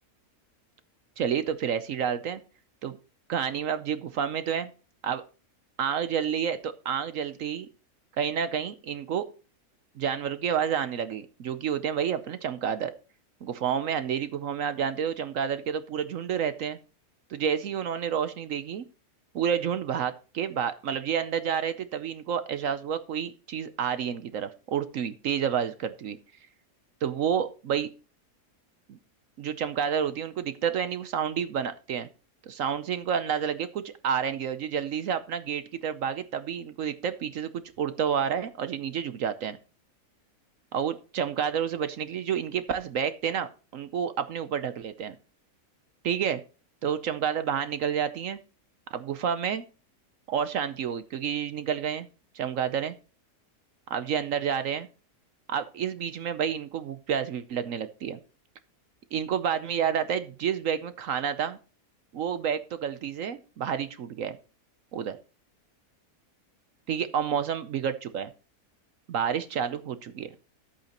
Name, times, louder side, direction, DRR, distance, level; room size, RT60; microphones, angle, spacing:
voice 1, 1.2-2.4 2.8-3.0 3.3-4.7 5.0-5.2 5.8-7.7 8.2-9.3 10.0-12.9 13.4-16.8 17.3-18.9 19.3-26.2 27.0-27.9 28.9-29.0 29.4-32.1 32.5-39.6 40.7-45.1 46.0-46.4 46.8-48.4 48.9-49.6 50.3-52.1 52.3-52.9 53.9-54.9 55.5-58.2 59.1-61.6 62.1-64.4 64.9-65.2 66.9-68.3 69.1-70.3, right 8 dB, 65° right, 12 dB, 1.0 m, -29 dB
11.5 x 8.3 x 2.9 m, 0.35 s
omnidirectional pair, 1.6 m